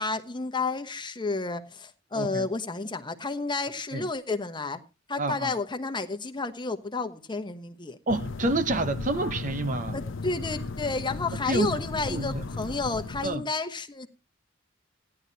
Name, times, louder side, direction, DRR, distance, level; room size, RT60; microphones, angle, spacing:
voice 1, 0.0-4.8 5.1-8.0 9.9-14.1, left 3 dB, 25° left, 1.1 m, -31 dB
voice 2, 2.1-2.5 3.9-4.1 5.2-5.5 8.1-10.0 11.4-11.8 12.1-12.4 13.2-13.4, right 2 dB, 40° right, 0.8 m, -28 dB
sound 1, 8.1-13.4, left 3 dB, 70° left, 0.8 m, -35 dB
16.5 x 11.0 x 2.7 m
head